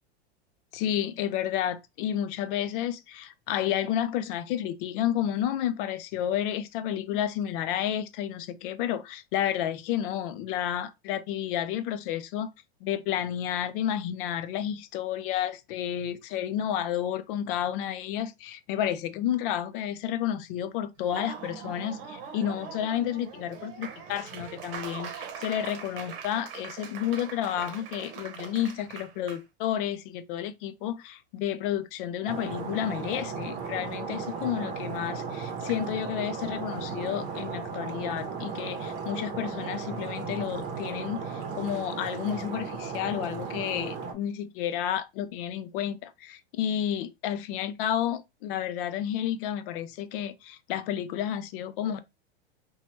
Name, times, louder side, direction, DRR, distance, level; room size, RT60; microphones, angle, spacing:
voice 1, 0.7-12.5 12.8-52.0, left 10 dB, 55° left, 0.5 m, -31 dB
Laughter / Applause, 21.0-29.4, right 7 dB, 60° right, 0.8 m, -41 dB
Stream, 32.3-44.1, right 5 dB, 40° right, 0.8 m, -35 dB
3.0 x 2.3 x 2.8 m
hypercardioid pair, 125°, 32 cm